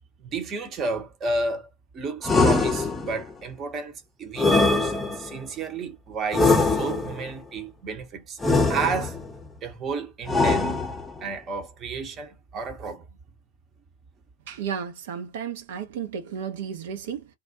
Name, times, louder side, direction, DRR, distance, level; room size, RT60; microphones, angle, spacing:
voice 1, 0.2-1.7 1.9-8.4 8.7-9.2 9.6-10.8 11.2-13.1, right 4 dB, 30° right, 0.9 m, -32 dB
sound 1, 2.2-3.3 4.4-5.4 6.3-7.3 8.4-9.3 10.3-11.2, left 3 dB, 10° left, 0.7 m, -22 dB
voice 2, 14.5-17.3, right 7 dB, 55° right, 0.6 m, -33 dB
2.4 x 2.1 x 2.6 m
figure-of-eight pair, 90°, 0 cm